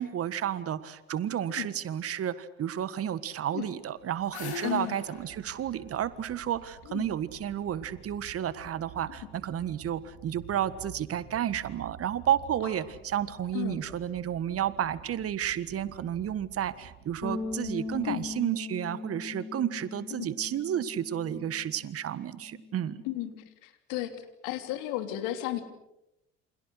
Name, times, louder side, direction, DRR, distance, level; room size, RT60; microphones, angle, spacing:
voice 1, 0.0-23.0, right 10 dB, 45° right, 16 dB, 1.6 m, -31 dB
sound 1, 3.8-7.0, left 5 dB, 85° left, 4.1 m, -43 dB
voice 2, 4.6-5.0 6.9-7.1 13.5-13.8 18.0-18.2 20.2-20.3 23.0-23.3 23.6-24.1 24.4-25.6, left 14 dB, 65° left, 8 dB, 3.1 m, -33 dB
sound 2, 5.1-18.2, right 8 dB, 70° right, 5.3 m, -51 dB
sound 3, 17.2-21.8 22.1-23.5, left 3 dB, 15° left, 2.6 m, -40 dB
29.0 x 26.0 x 6.5 m, 0.88 s
hypercardioid pair, 55°, 32 cm